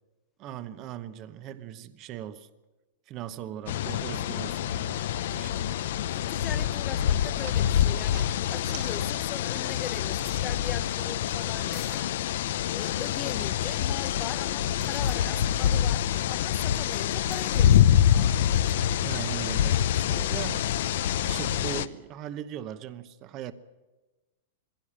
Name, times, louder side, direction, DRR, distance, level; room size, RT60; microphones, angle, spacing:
voice 1, 0.4-2.5 3.1-5.0 5.3-5.7 19.0-20.7 21.2-23.5, right 11 dB, 30° right, 0.9 m, -39 dB
sound 1, 3.7-21.9, left 10 dB, 65° left, 0.8 m, -26 dB
voice 2, 6.1-12.1 12.7-18.3, left 8 dB, 20° left, 0.7 m, -40 dB
sound 2, 6.5-10.1 10.4-11.8, right 10 dB, 45° right, 1.8 m, -49 dB
sound 3, 9.3-9.4 9.6-10.4 11.7-12.2 14.5-15.3 17.3-17.5 18.4-18.8, left 1 dB, ahead, 1.4 m, -50 dB
21.5 x 16.0 x 8.6 m
supercardioid pair, 160°, 0 cm